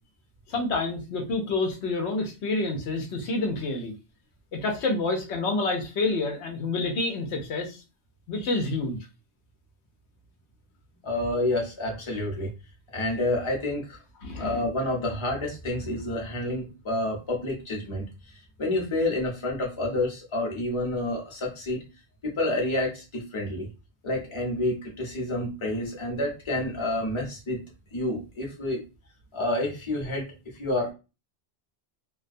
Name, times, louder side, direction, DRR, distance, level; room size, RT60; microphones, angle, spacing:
voice 1, 0.5-3.9 4.5-7.8 8.3-9.0 14.2-14.6, left 3 dB, 85° left, 3 dB, 0.9 m, -28 dB
voice 2, 11.0-12.5 12.9-14.0 14.4-18.0 18.6-21.8 22.2-23.7 24.0-27.6 27.9-28.8 29.3-30.9, left 1 dB, 30° left, -1 dB, 0.8 m, -29 dB
2.3 x 2.2 x 2.5 m, 0.29 s
omnidirectional pair, 1.1 m